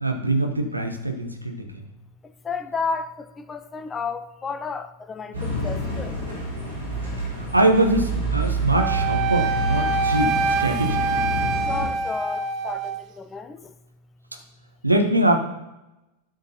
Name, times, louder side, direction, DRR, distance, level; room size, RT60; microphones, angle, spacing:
voice 1, 0.0-1.8 7.2-11.0 14.8-15.4, right 1 dB, 85° right, 1.2 m, -23 dB
voice 2, 2.4-6.1 11.7-13.7, left 5 dB, 20° left, 0.6 m, -32 dB
sound 1, 5.3-11.9, right 1 dB, 70° right, 3.0 m, -28 dB
Wind instrument woodwind instrument, 8.7-13.0, right 4 dB, 35° right, 0.5 m, -25 dB
12.5 x 6.4 x 3.0 m
figure-of-eight pair, 90°, 0 cm